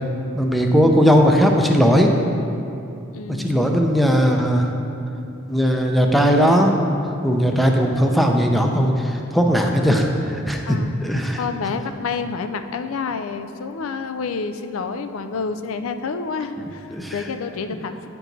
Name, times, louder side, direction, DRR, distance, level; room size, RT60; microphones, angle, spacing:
voice 1, 0.3-2.1 3.4-4.7 5.5-6.7 7.2-11.4 16.9-17.1, equal, ahead, 1 dB, 0.5 m, -18 dB
voice 2, 3.1-3.5 10.7-10.9 11.3-18.1, left 5 dB, 85° left, 9 dB, 0.4 m, -28 dB
9.8 x 4.6 x 4.0 m, 2.6 s
head